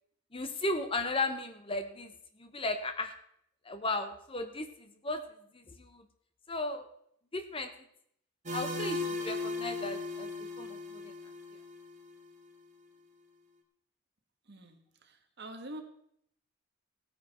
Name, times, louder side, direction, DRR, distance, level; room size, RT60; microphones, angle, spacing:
voice 1, 0.3-2.1 2.4-3.1 3.7-4.7 5.0-5.2 5.5-6.0 6.5-6.9 7.3-7.7 8.5-11.1, left 2 dB, 25° left, 8 dB, 0.8 m, -35 dB
sound 1, 8.5-12.2, left 2 dB, 35° right, 1.6 m, -37 dB
voice 2, 14.5-15.8, right 1 dB, 50° right, 5 dB, 1.5 m, -46 dB
16.5 x 9.1 x 4.3 m, 0.70 s
head